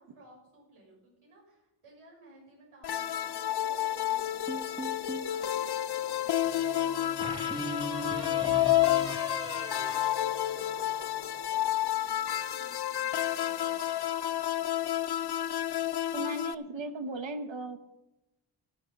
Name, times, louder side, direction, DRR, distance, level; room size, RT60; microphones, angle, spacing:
voice 1, 0.0-9.1 9.5-13.8, right 2 dB, 90° right, -2 dB, 6.8 m, -58 dB
sound 1, 2.8-16.5, left 12 dB, 55° left, 0.6 m, -30 dB
sound 2, 4.5-5.4 7.2-11.0, right 1 dB, 10° right, 1.6 m, -40 dB
sound 3, 6.0-11.9, left 4 dB, 30° left, 1.8 m, -48 dB
voice 2, 16.1-17.8, right 2 dB, 65° right, 8 dB, 1.4 m, -36 dB
13.5 x 12.0 x 5.4 m, 0.96 s
wide cardioid pair, 95°, 49 cm